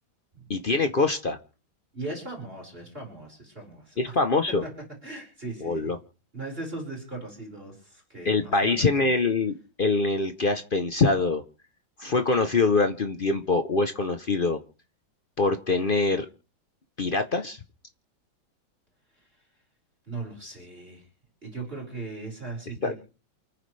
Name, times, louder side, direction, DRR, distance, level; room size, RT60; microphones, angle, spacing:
voice 1, 0.5-1.4 4.0-4.6 5.6-6.0 8.2-11.4 12.0-14.6 15.4-16.3 17.0-17.6 22.8-22.9, left 3 dB, 60° left, 8 dB, 0.5 m, -24 dB
voice 2, 1.9-4.1 4.5-4.7 5.0-5.9 6.3-9.1 20.1-21.0 21.4-22.9, right 2 dB, 25° right, -2 dB, 5.3 m, -38 dB
28.5 x 9.8 x 3.3 m, 0.39 s
omnidirectional pair, 2.2 m